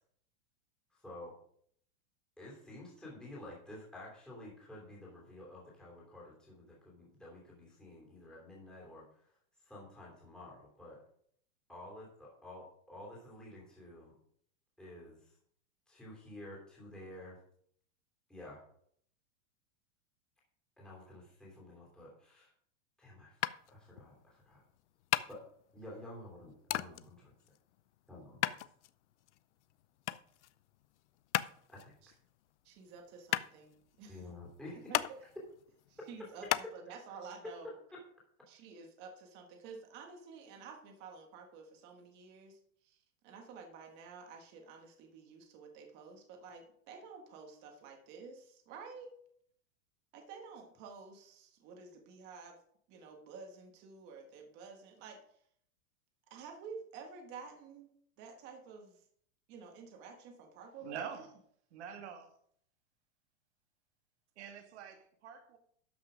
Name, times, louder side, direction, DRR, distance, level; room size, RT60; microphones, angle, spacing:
voice 1, 0.9-1.3 2.4-9.4 9.6-11.0 11.7-14.1 14.8-15.4 15.9-17.4 18.3-18.6 20.8-22.5 23.0-24.6 25.3-25.4 25.7-27.3 28.1-28.6 31.7-31.9 34.1-35.0 36.0-36.1 37.6-38.0, left 1 dB, ahead, 2.9 m, -51 dB
sound 1, 23.4-36.7, left 14 dB, 60° left, 0.6 m, -38 dB
voice 2, 32.6-34.2 34.9-35.2 35.9-37.7 38.5-43.0 43.2-49.1 50.1-52.6 52.9-55.2 56.3-59.0 59.5-61.2, right 5 dB, 25° right, 1.6 m, -51 dB
voice 3, 60.8-61.3 61.7-62.3 64.4-65.6, right 7 dB, 55° right, 1.7 m, -45 dB
12.5 x 6.0 x 5.1 m
supercardioid pair, 175°, 39 cm